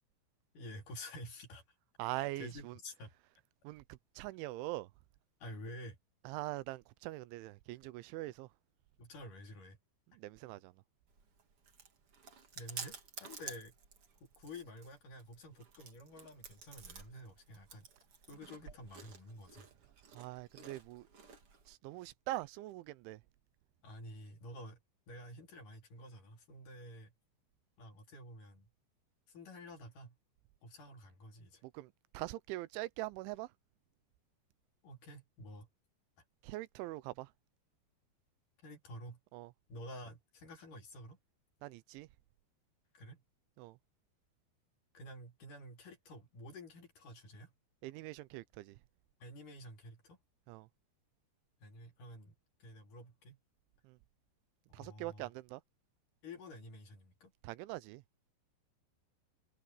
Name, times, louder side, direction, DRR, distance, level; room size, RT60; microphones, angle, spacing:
voice 1, 0.5-1.6 2.1-3.1 5.4-6.0 9.0-9.8 12.5-13.7 14.4-17.9 18.3-19.7 23.8-24.8 25.1-27.1 27.8-28.7 29.3-30.2 30.6-31.6 34.8-35.7 38.6-39.2 39.7-41.2 42.9-43.2 44.9-47.5 49.2-50.2 51.6-52.3 52.6-53.4 54.7-55.3 56.2-57.3, left 1 dB, 50° left, 4.6 m, -50 dB
voice 2, 2.0-2.8 3.6-4.9 6.3-8.5 10.2-10.7 20.1-21.1 21.7-23.2 31.6-33.5 36.4-37.3 39.3-39.5 41.6-42.1 43.6-43.8 47.8-48.8 50.5-50.7 53.8-54.0 54.7-55.6 57.4-58.0, right 18 dB, 90° right, 3.2 m, -43 dB
Chewing mastication, 11.1-21.7, right 6 dB, 40° right, 2.3 m, -52 dB
omnidirectional pair, 5.3 m